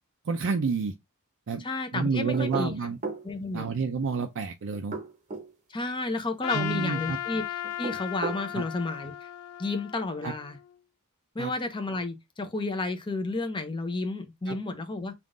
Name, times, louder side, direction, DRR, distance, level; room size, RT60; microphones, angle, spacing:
voice 1, 0.3-0.9 1.5-1.7 1.9-3.0 3.5-4.9 6.5-7.2 8.5-8.6 10.2-10.3 11.4-11.5 14.5-14.6, right 5 dB, 60° right, 0.4 m, -29 dB
voice 2, 1.6-2.7 3.2-3.7 5.7-9.3 9.6-10.6 11.3-15.1, left 2 dB, 20° left, 0.6 m, -32 dB
sound 1, 2.3-3.3 4.7-5.5 7.6-8.5, right 3 dB, 35° right, 0.8 m, -35 dB
Trumpet, 6.4-10.7, left 12 dB, 65° left, 0.3 m, -36 dB
3.6 x 2.4 x 3.6 m
head